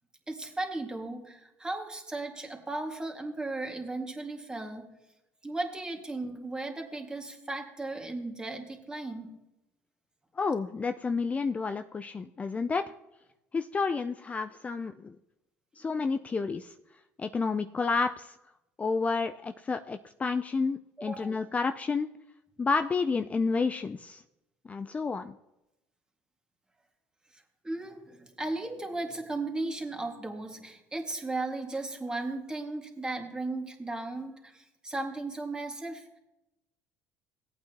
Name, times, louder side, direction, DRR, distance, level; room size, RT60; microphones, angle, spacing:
voice 1, 0.3-4.9 5.4-9.4 21.0-21.3 27.3-36.2, right 2 dB, 15° right, 3 dB, 2.0 m, -36 dB
voice 2, 10.4-12.8 13.5-15.2 15.8-16.7 17.2-18.4 18.8-22.1 22.6-24.2 24.6-25.3, left 4 dB, 25° left, 8 dB, 0.5 m, -30 dB
17.5 x 8.7 x 3.0 m, 0.91 s
supercardioid pair, 95°, 6 cm